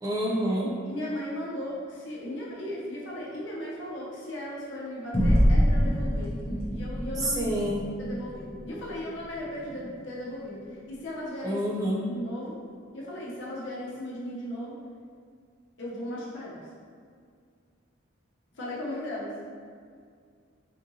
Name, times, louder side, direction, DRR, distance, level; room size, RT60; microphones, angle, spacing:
voice 1, 0.0-0.7 7.3-7.9 11.4-12.0, equal, 20° right, -4 dB, 0.4 m, -28 dB
voice 2, 0.8-6.4 6.7-7.4 8.0-11.6 12.0-12.6 12.9-14.8 15.8-16.7 18.5-19.4, left 1 dB, 65° left, -6 dB, 0.8 m, -36 dB
sound 1, 5.1-10.0, equal, 35° left, 0.7 m, -26 dB
3.7 x 2.6 x 2.7 m, 2.1 s
head